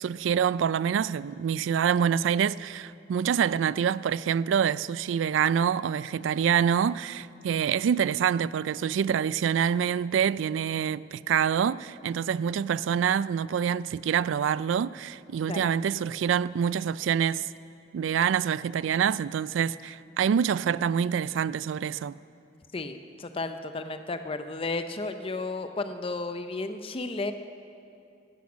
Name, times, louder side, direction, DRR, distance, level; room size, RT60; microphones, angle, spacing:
voice 1, 0.0-17.5 17.9-22.1, right 8 dB, 85° right, 0.3 m, -26 dB
voice 2, 22.7-27.3, left 3 dB, 30° left, 0.5 m, -33 dB
14.5 x 12.0 x 7.3 m
head